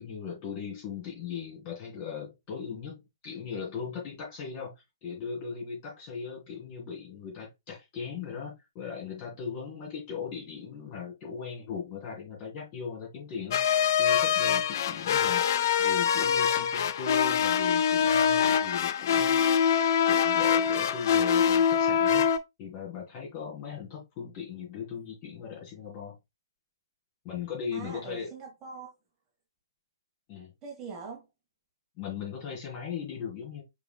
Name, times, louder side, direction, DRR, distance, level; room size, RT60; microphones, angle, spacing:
voice 1, 0.0-4.7 5.0-15.4 15.8-19.6 20.1-22.3 22.6-26.1 27.2-28.3 30.3-30.5 32.0-33.6, left 6 dB, 30° left, 2.8 m, -38 dB
sound 1, 13.5-22.4, left 8 dB, 50° left, 0.4 m, -24 dB
voice 2, 15.3-15.7 24.9-25.0 27.7-28.9 30.6-31.2, right 5 dB, 25° right, 1.4 m, -42 dB
5.7 x 3.9 x 2.2 m
figure-of-eight pair, 125°, 2 cm